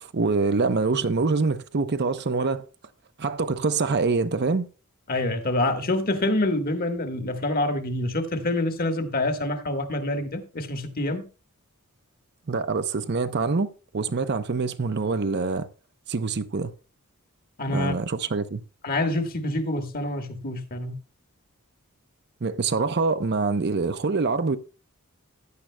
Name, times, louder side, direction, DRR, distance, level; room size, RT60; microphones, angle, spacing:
voice 1, 0.0-2.6 3.2-4.7 12.5-15.7 16.1-16.7 17.7-18.6 22.4-24.6, right 4 dB, 50° right, 0.6 m, -25 dB
voice 2, 5.1-11.2 17.6-17.9 18.8-20.9, left 2 dB, 40° left, 1.4 m, -26 dB
15.0 x 10.0 x 2.2 m
head